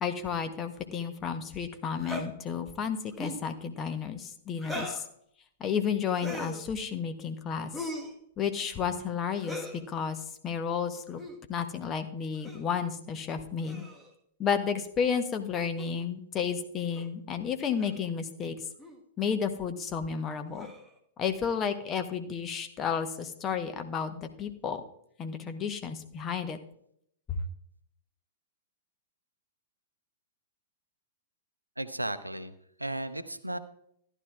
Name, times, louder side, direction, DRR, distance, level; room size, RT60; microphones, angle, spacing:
voice 1, 0.0-5.0 5.6-7.7 8.4-9.6 9.9-11.2 11.5-13.8 14.4-18.6 19.2-20.7 21.2-24.8 25.2-26.6 27.3-27.4, left 7 dB, 25° left, 8 dB, 0.9 m, -32 dB
sound 1, 2.0-2.3 3.1-3.5 4.6-5.1 6.1-6.6 7.7-8.1 9.4-9.8 11.1-11.4 12.4-12.7 13.6-14.1 15.8-15.9 16.9-17.1 17.8-18.0 18.8-19.0 20.5-20.9, left 1 dB, ahead, 1.3 m, -39 dB
voice 2, 31.8-33.6, right 1 dB, 85° right, 13 dB, 0.5 m, -35 dB
14.0 x 11.0 x 2.4 m, 0.72 s
figure-of-eight pair, 100°, 0 cm